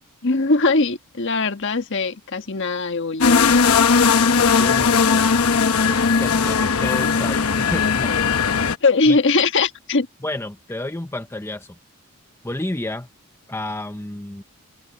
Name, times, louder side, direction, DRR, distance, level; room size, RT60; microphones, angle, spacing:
voice 1, 0.2-3.6 8.8-10.1, left 3 dB, 55° left, 1.5 m, -20 dB
sound 1, 3.2-8.8, left 5 dB, 75° left, 1.0 m, -18 dB
voice 2, 4.3-5.2 5.8-8.3 9.1-9.2 10.2-11.7 12.4-13.1 13.5-14.4, left 1 dB, 10° left, 0.7 m, -31 dB
head